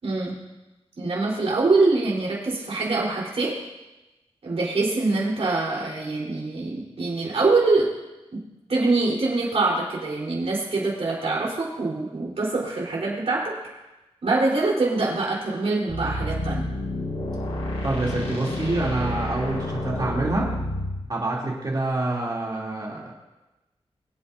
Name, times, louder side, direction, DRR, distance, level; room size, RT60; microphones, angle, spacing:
voice 1, 0.0-0.4 1.0-3.6 4.4-7.9 8.3-8.4 8.7-13.5 14.2-16.7, right 3 dB, 65° right, -4 dB, 4.2 m, -24 dB
sound 1, 15.9-21.0, left 1 dB, 75° left, 5.2 m, -29 dB
voice 2, 17.8-20.5 21.1-23.1, right 2 dB, 40° right, -4 dB, 3.1 m, -27 dB
24.0 x 8.3 x 2.8 m, 1.0 s
wide cardioid pair, 135°, 11 cm